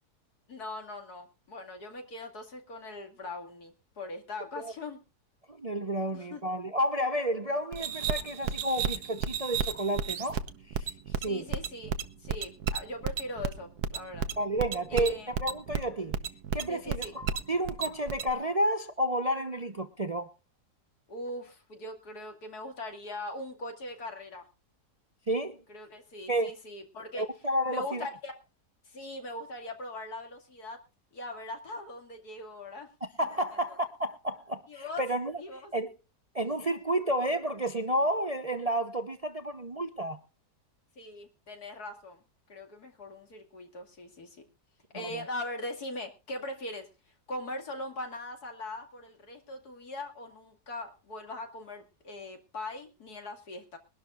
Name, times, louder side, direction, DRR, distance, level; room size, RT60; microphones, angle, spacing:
voice 1, 0.5-5.0 6.1-6.4 11.2-12.0 12.2-14.3 14.9-15.3 16.7-17.1 21.1-24.4 25.7-27.3 27.7-28.4 28.8-30.8 31.1-32.9 34.7-35.0 35.4-35.7 41.0-42.2 42.5-44.5 44.9-46.9 47.3-53.8, left 1 dB, 70° left, 2.9 m, -40 dB
voice 2, 5.5-10.4 10.7-11.4 14.4-16.2 16.5-20.3 25.3-25.6 26.3-26.5 27.2-28.1 33.2-35.4 35.7-35.9 36.3-40.2 44.9-45.1, right 1 dB, 30° right, 0.7 m, -31 dB
sound 1, 7.7-18.3, right 6 dB, 70° right, 1.5 m, -33 dB
22.5 x 12.0 x 2.5 m
omnidirectional pair, 1.7 m